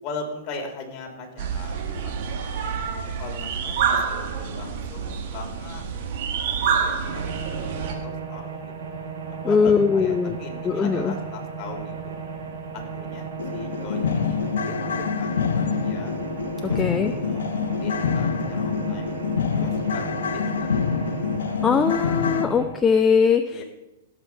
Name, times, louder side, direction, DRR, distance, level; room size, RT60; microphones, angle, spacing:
voice 1, 0.0-2.8 3.2-5.9 6.5-8.9 9.4-12.2 12.7-16.1 16.6-17.4 17.7-19.1 19.6-20.7 23.5-23.6, left 3 dB, 40° left, 2 dB, 3.0 m, -39 dB
sound 1, 1.4-7.9, right 7 dB, 55° right, 2.0 m, -27 dB
sound 2, 7.1-22.7, right 6 dB, 70° right, 3.7 m, -35 dB
voice 2, 9.4-10.4 10.6-11.1 16.8-17.1 21.6-23.6, left 5 dB, 15° left, 7 dB, 0.6 m, -20 dB
sound 3, 12.5-12.6 13.0-13.1 13.4-22.5, left 6 dB, 80° left, 0.9 m, -26 dB
16.5 x 7.3 x 4.6 m, 0.99 s
hypercardioid pair, 130°, 0 cm